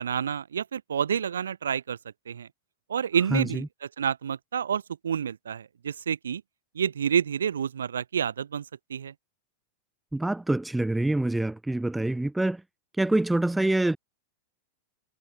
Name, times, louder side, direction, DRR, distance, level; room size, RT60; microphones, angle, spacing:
voice 1, 0.0-2.0 2.3-2.5 2.9-3.6 4.0-6.4 6.7-9.1, right 8 dB, 70° right, 0.9 m, -29 dB
voice 2, 10.1-12.6 13.0-14.0, right 2 dB, 5° right, 0.4 m, -25 dB
figure-of-eight pair, 90°, 0 cm